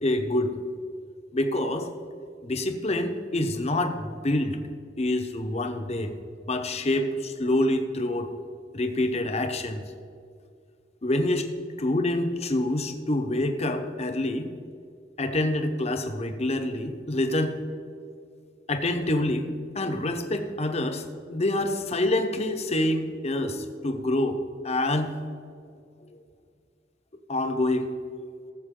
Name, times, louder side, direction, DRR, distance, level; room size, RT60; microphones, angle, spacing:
voice 1, 0.0-0.6 1.3-1.9 2.4-4.6 5.0-6.2 6.5-8.3 8.7-9.8 11.0-11.5 11.8-14.5 15.2-17.6 18.7-25.2 27.3-27.9, left 1 dB, 35° left, 6 dB, 1.0 m, -26 dB
18.0 x 7.5 x 3.8 m, 2.3 s
head